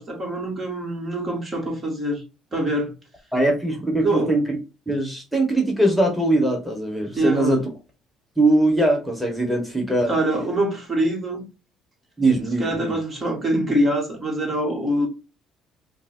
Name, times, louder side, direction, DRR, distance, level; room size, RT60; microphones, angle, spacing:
voice 1, 0.0-2.2 2.5-2.9 4.0-4.3 7.1-7.6 10.1-11.4 12.6-15.1, right 1 dB, 35° right, 2.2 m, -24 dB
voice 2, 3.3-4.6 4.9-7.7 8.4-10.1 12.2-13.0, right 2 dB, ahead, 1.7 m, -21 dB
5.3 x 2.7 x 2.8 m
supercardioid pair, 80°, 0 cm